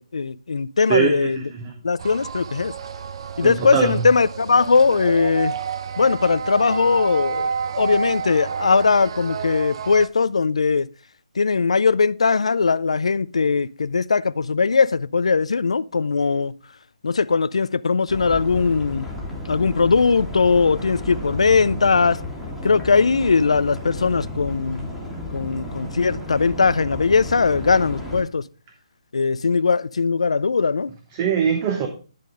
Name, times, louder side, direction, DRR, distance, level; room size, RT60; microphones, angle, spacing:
voice 1, 0.0-1.4 1.8-2.7 3.4-5.5 6.0-10.9 11.4-16.5 17.0-19.1 19.5-22.2 22.6-24.9 25.3-28.4 29.1-30.9, left 4 dB, 85° left, 0.4 m, -20 dB
voice 2, 0.9-1.7 3.4-4.1 31.1-31.9, right 7 dB, 25° right, 0.9 m, -22 dB
sound 1, 2.0-10.1, right 6 dB, 55° right, 0.7 m, -30 dB
sound 2, 18.1-28.2, left 1 dB, ahead, 1.7 m, -33 dB
10.5 x 3.8 x 5.0 m
hypercardioid pair, 155°, 3 cm